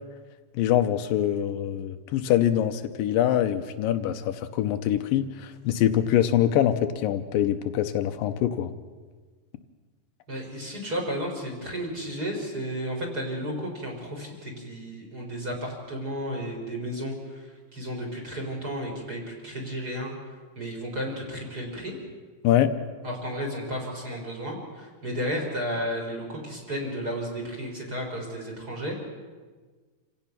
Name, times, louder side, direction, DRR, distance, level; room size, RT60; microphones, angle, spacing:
voice 1, 0.5-8.7 22.4-22.7, left 11 dB, 80° left, 9 dB, 2.5 m, -24 dB
voice 2, 10.3-20.1 20.6-21.9 23.0-29.1, equal, 25° right, -1 dB, 4.2 m, -33 dB
27.5 x 16.5 x 5.9 m, 1.4 s
omnidirectional pair, 4.0 m